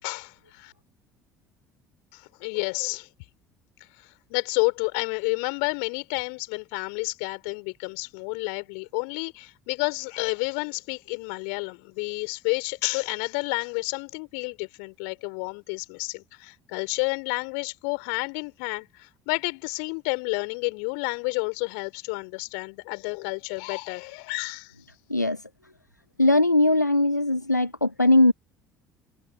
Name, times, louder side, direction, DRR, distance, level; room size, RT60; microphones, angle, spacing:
voice 1, 0.0-0.7 2.1-3.1 4.0-24.7, left 40 dB or more, 60° left, 5.0 m, -30 dB
voice 2, 25.1-25.4 26.2-28.3, left 2 dB, 90° left, 1.0 m, -20 dB
figure-of-eight pair, 60°, 9 cm